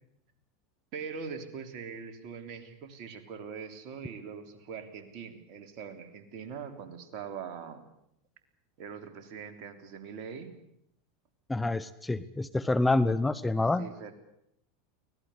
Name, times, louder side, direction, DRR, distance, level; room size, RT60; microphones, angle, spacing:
voice 1, 0.9-7.8 8.8-10.5 13.8-14.1, right 6 dB, 50° right, 7 dB, 3.5 m, -42 dB
voice 2, 11.5-13.8, left 2 dB, 10° left, 13 dB, 0.9 m, -27 dB
24.5 x 18.5 x 8.2 m, 0.75 s
hypercardioid pair, 90°, 0 cm